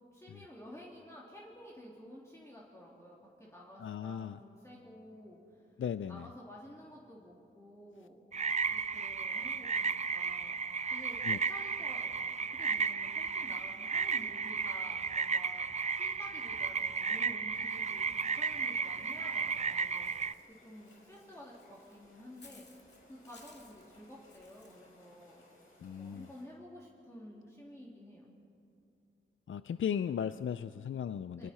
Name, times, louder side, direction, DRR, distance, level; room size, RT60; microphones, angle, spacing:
voice 1, 0.1-5.8 6.1-8.2 8.7-10.5 10.9-11.2 11.4-22.7 23.1-25.4 26.0-28.3 31.3-31.5, equal, 15° left, -5 dB, 2.9 m, -52 dB
voice 2, 3.8-4.4 5.8-6.3 11.2-11.4 25.8-26.3 29.5-31.5, left 8 dB, 70° left, 13 dB, 0.4 m, -36 dB
sound 1, 8.3-20.3, right 5 dB, 35° right, 0.4 m, -34 dB
sound 2, 17.6-26.4, left 2 dB, 90° left, 5.6 m, -63 dB
Walk footsteps / Bird, 20.0-24.8, left 3 dB, 55° left, 2.3 m, -61 dB
29.5 x 24.0 x 4.4 m, 2.6 s
wide cardioid pair, 110°, 21 cm